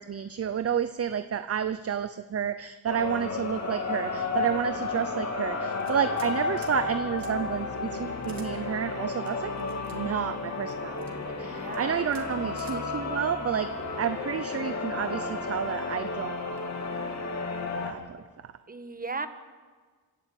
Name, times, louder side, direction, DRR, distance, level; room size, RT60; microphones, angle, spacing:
voice 1, 0.0-13.7 14.0-16.4 17.9-18.2, right 8 dB, 40° right, 11 dB, 0.7 m, -30 dB
sound 1, 2.9-17.9, left 4 dB, 45° left, 3.0 m, -32 dB
sound 2, 5.8-6.3 6.6-6.8 7.2-7.3 8.2-8.5 9.2-10.0 10.7-11.1 11.7-11.8 12.1-12.3 12.6-12.8, right 6 dB, 65° right, 2.9 m, -50 dB
voice 2, 11.4-12.1 18.7-19.3, right 3 dB, 25° right, 10 dB, 1.4 m, -36 dB
27.0 x 13.0 x 8.6 m, 1.5 s
wide cardioid pair, 120°, 36 cm